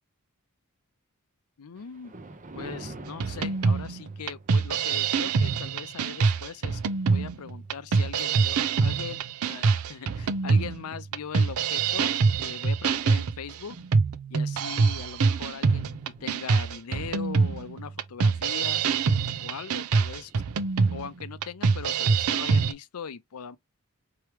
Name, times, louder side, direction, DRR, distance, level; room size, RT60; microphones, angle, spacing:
voice 1, 1.6-2.1 2.5-6.8 7.1-9.2 9.5-12.1 12.4-13.8 14.3-18.8 19.4-20.3 20.9-23.6, left 6 dB, 85° left, 0.5 m, -40 dB
Thunder, 1.8-10.3 10.8-11.0 11.7-11.8 12.2-12.3 14.5-14.7 15.0-15.1 15.3-21.3, right 2 dB, 35° right, 0.8 m, -50 dB
sound 1, 3.2-22.7, right 4 dB, 80° right, 0.5 m, -25 dB
4.5 x 3.0 x 3.2 m
head